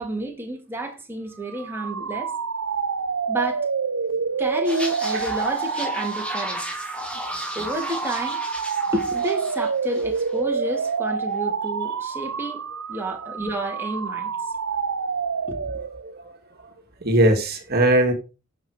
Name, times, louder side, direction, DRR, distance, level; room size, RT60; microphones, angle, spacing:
voice 1, 0.0-2.3 3.3-3.6 4.4-6.7 7.5-8.4 8.9-12.6 12.9-14.3 15.5-15.9, right 1 dB, 10° right, 2.8 m, -30 dB
sound 1, 1.4-16.1, right 5 dB, 70° right, 0.7 m, -28 dB
sound 2, 4.6-10.4 10.6-10.9, left 1 dB, 5° left, 2.9 m, -34 dB
voice 2, 16.0-16.4 17.0-18.1, right 1 dB, 45° right, 2.2 m, -20 dB
11.5 x 7.8 x 4.7 m
head